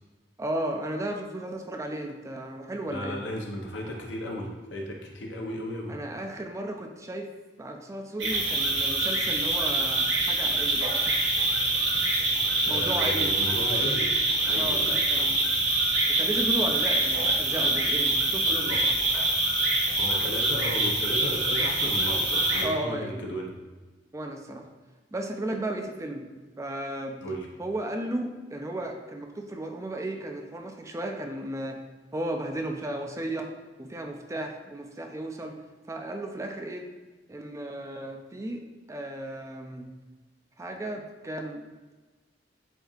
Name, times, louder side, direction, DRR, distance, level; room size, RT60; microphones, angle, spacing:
voice 1, 0.4-3.2 5.9-7.3 7.6-11.1 12.7-13.4 14.5-15.4 16.1-18.9 22.6-23.3 24.1-24.6 25.1-26.3 26.6-27.2 27.6-31.8 32.1-33.5 33.8-35.6 35.9-36.9 37.3-38.6 38.9-39.9 40.6-41.6, right 1 dB, 15° right, 4 dB, 0.4 m, -34 dB
voice 2, 2.9-5.9 12.3-14.1 14.4-15.3 18.6-18.8 20.0-23.5 27.2-27.5, equal, 75° left, 0 dB, 0.8 m, -35 dB
sound 1, 8.2-22.6, right 2 dB, 80° right, 1.3 m, -25 dB
7.7 x 2.7 x 2.4 m, 1.3 s
head